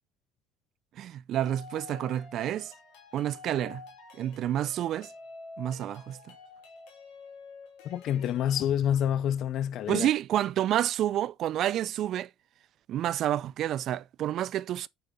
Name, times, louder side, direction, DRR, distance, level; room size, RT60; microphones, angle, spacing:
voice 1, 1.0-2.7 3.1-3.8 4.1-5.1 5.6-6.2 9.9-12.3 12.9-14.9, right 12 dB, 55° right, 0.4 m, -29 dB
sound 1, 1.3-8.7, left 4 dB, 80° left, 2.8 m, -48 dB
voice 2, 7.8-10.1, left 10 dB, 60° left, 0.5 m, -27 dB
6.9 x 5.4 x 3.7 m
cardioid pair, 115°, 0 cm